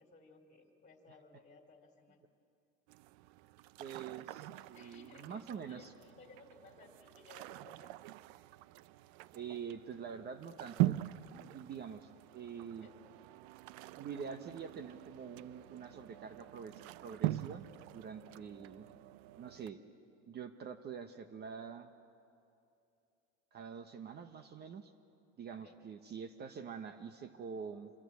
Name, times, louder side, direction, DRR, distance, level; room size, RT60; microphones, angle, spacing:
voice 1, 0.0-2.3 4.7-8.1 12.8-12.9 18.3-18.6 25.5-25.8, left 3 dB, 20° left, 5 dB, 2.9 m, -60 dB
sound 1, 2.9-19.7, right 15 dB, 70° right, 0.7 m, -43 dB
voice 2, 3.8-5.9 9.3-11.0 11.3-12.9 14.0-16.7 17.0-17.6 17.9-18.8 19.4-19.8 20.3-21.9 23.5-24.9 25.4-27.9, right 6 dB, 30° right, 9 dB, 1.0 m, -46 dB
26.5 x 22.5 x 8.4 m, 2.6 s
supercardioid pair, 135°, 34 cm